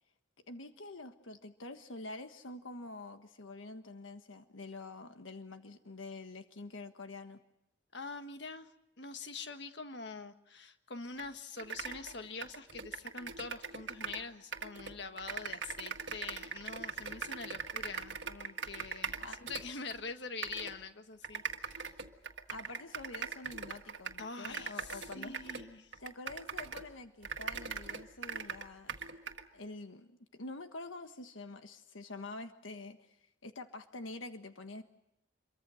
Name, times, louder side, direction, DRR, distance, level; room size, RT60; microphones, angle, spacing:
voice 1, 0.5-7.4 19.0-19.4 22.5-25.4 26.0-29.2 29.5-34.8, left 2 dB, 85° left, 7 dB, 1.4 m, -47 dB
voice 2, 7.9-8.7 9.0-21.9 24.2-26.0, left 4 dB, 60° left, 8 dB, 1.6 m, -45 dB
sound 1, 11.2-11.3 11.6-14.3 14.5-20.0 20.4-20.7 21.2-26.9 27.2-29.4, right 5 dB, 65° right, 1.7 m, -41 dB
27.0 x 23.5 x 6.4 m, 0.83 s
head